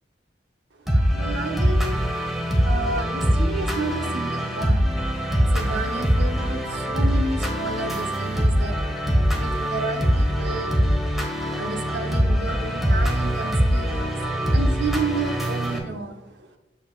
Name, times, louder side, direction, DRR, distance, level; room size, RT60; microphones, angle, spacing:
voice 1, 0.8-2.4 2.6-16.6, right 3 dB, 75° right, 4 dB, 1.0 m, -32 dB
sound 1, 0.9-15.8, equal, ahead, 1.4 m, -23 dB
8.2 x 6.9 x 2.4 m, 1.0 s
head